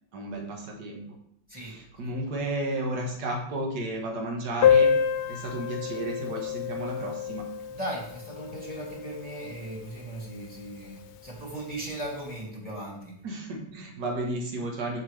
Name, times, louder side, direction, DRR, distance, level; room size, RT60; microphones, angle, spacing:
voice 1, 0.1-1.0 1.5-4.9 5.3-7.5 13.2-15.0, right 1 dB, 85° right, 1 dB, 1.9 m, -33 dB
voice 2, 1.5-2.4 7.7-13.2, right 1 dB, 5° right, -4 dB, 2.7 m, -38 dB
Piano, 4.6-10.0 10.2-10.3 10.6-10.7 11.0-11.1 11.9-12.1, left 7 dB, 85° left, 1.1 m, -27 dB
6.9 x 6.6 x 3.3 m, 0.71 s
omnidirectional pair, 1.7 m